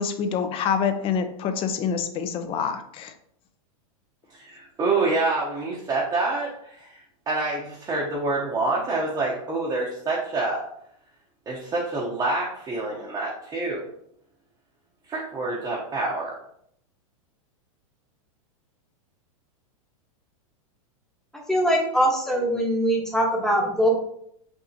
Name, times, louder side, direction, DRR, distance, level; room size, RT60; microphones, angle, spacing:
voice 1, 0.0-3.1, left 6 dB, 30° left, 8 dB, 0.5 m, -26 dB
voice 2, 4.3-7.0 7.3-10.6 11.5-13.9 15.1-16.4, right 3 dB, 20° right, -4 dB, 0.8 m, -27 dB
voice 3, 21.3-23.9, equal, 5° left, -1 dB, 1.0 m, -22 dB
5.6 x 2.8 x 2.7 m, 0.70 s
hypercardioid pair, 130°, 18 cm